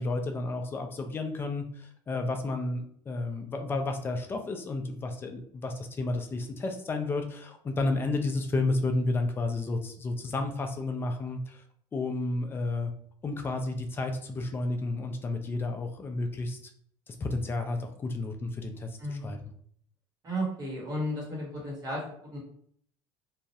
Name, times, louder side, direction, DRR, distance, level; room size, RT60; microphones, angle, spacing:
voice 1, 0.0-11.6 11.9-12.9 13.2-16.6 17.1-19.4, left 2 dB, 20° left, 5 dB, 0.3 m, -31 dB
voice 2, 19.0-19.4 20.2-22.4, equal, 30° right, -4 dB, 1.0 m, -34 dB
2.3 x 2.0 x 2.7 m, 0.62 s
cardioid pair, 135°, 11 cm